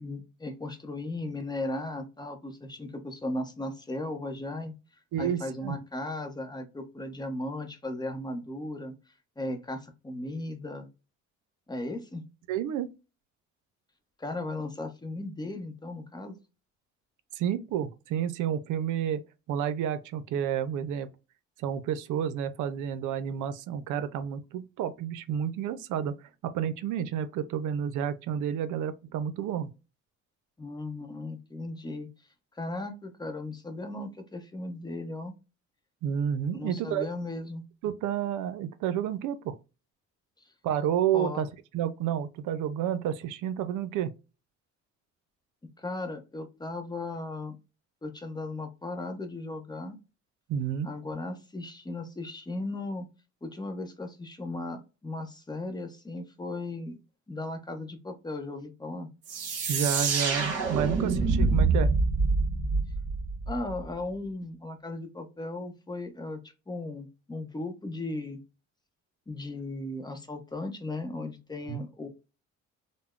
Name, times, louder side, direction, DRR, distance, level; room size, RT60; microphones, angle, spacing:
voice 1, 0.0-4.7 5.2-8.9 9.4-10.9 11.7-12.2 14.2-16.4 30.6-32.1 32.6-35.3 36.5-37.6 41.1-41.4 45.8-47.5 48.0-50.0 50.8-53.1 53.4-57.0 57.3-59.1 63.5-66.4 66.7-68.4 69.3-72.1, left 2 dB, 15° left, 0.7 m, -36 dB
voice 2, 5.1-5.8 12.5-12.9 17.4-19.2 19.5-21.1 21.6-26.2 26.4-29.7 36.0-37.1 37.8-39.6 40.6-41.5 41.7-44.1 50.5-50.9 59.7-61.9 71.7-71.8, right 9 dB, 85° right, 0.5 m, -30 dB
sound 1, 59.3-63.8, right 3 dB, 50° right, 1.3 m, -26 dB
3.4 x 2.0 x 2.3 m
cardioid pair, 90°, 30 cm